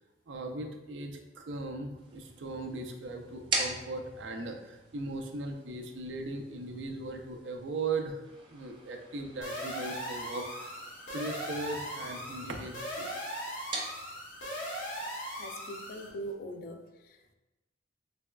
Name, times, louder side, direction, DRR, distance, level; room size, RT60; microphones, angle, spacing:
voice 1, 0.3-8.2 8.5-10.8 11.1-13.1, right 3 dB, 90° right, 4 dB, 0.4 m, -38 dB
sound 1, 2.0-16.3, right 2 dB, 30° right, 0.4 m, -43 dB
sound 2, 9.4-16.1, equal, 85° left, 0.8 m, -39 dB
voice 2, 15.4-17.3, right 1 dB, 55° left, 6 dB, 0.3 m, -42 dB
3.4 x 3.1 x 2.2 m, 1.1 s
head